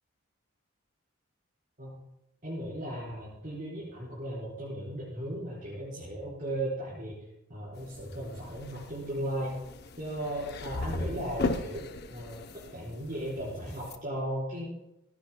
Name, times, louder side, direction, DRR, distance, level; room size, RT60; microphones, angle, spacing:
voice 1, 2.4-7.1 7.5-9.6 10.0-11.8 12.1-12.4 12.7-14.7, right 1 dB, 40° right, -9 dB, 4.3 m, -36 dB
sound 1, 7.8-14.0, left 2 dB, 50° left, 0.7 m, -38 dB
16.5 x 16.0 x 2.2 m, 0.89 s
head